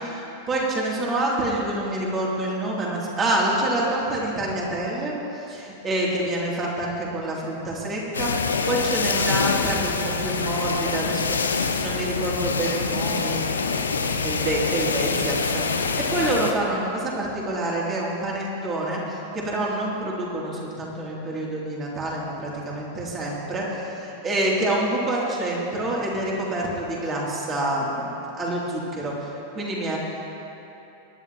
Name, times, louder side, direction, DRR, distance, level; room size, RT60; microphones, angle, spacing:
voice 1, 0.0-5.2 5.5-11.4 11.8-13.7 13.9-30.0, right 1 dB, 25° right, -4 dB, 3.2 m, -27 dB
sound 1, 8.1-16.5, left 4 dB, 75° left, 0.8 m, -25 dB
23.5 x 11.0 x 3.1 m, 3.0 s
figure-of-eight pair, 90°, 0 cm